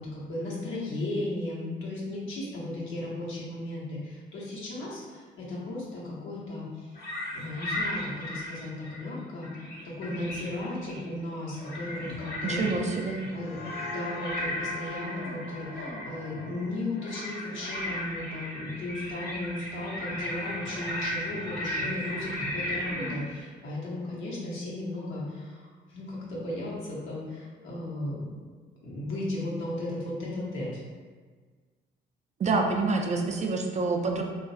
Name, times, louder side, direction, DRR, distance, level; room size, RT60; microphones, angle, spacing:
voice 1, 0.0-7.0 7.3-28.2 28.8-30.7, left 1 dB, 75° left, -6 dB, 0.9 m, -35 dB
sound 1, 7.0-9.1 9.4-11.1 11.5-23.2, left 1 dB, 50° left, 1.0 m, -36 dB
voice 2, 12.4-13.2 32.4-34.2, right 3 dB, 35° right, 2 dB, 0.4 m, -27 dB
sound 2, 13.0-18.5, left 2 dB, 30° left, 0.4 m, -44 dB
3.0 x 2.3 x 2.7 m, 1.5 s
cardioid pair, 90°, 20 cm